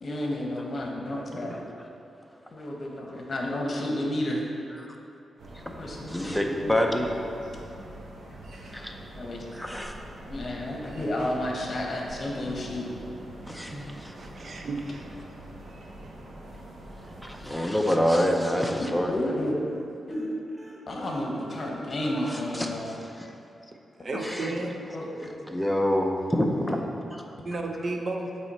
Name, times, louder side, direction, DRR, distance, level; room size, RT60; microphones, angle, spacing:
voice 1, 0.0-1.6 2.5-4.4 5.8-7.1 9.2-9.5 10.3-12.9 18.8-19.6 20.1-20.3 20.9-22.9 24.1-24.5 24.9-25.3, left 1 dB, 50° left, -1 dB, 1.0 m, -31 dB
sound 1, 5.4-17.5, right 1 dB, 80° right, 0.9 m, -44 dB
voice 2, 5.5-7.1 8.7-8.9 9.5-10.0 13.5-14.1 17.2-19.1 22.3-23.3 24.2-24.5 25.5-26.8 27.1-27.2, equal, 5° left, 2 dB, 0.6 m, -27 dB
voice 3, 14.1-15.3 24.0-24.7 27.4-28.3, right 2 dB, 50° right, 2 dB, 0.6 m, -33 dB
sound 2, 18.7-18.8 19.2-19.3 19.6-19.8 20.1-23.1 23.4-23.5 23.9-24.0, equal, 20° right, 1.0 m, -49 dB
8.0 x 3.2 x 4.2 m, 2.7 s
cardioid pair, 75°, 0 cm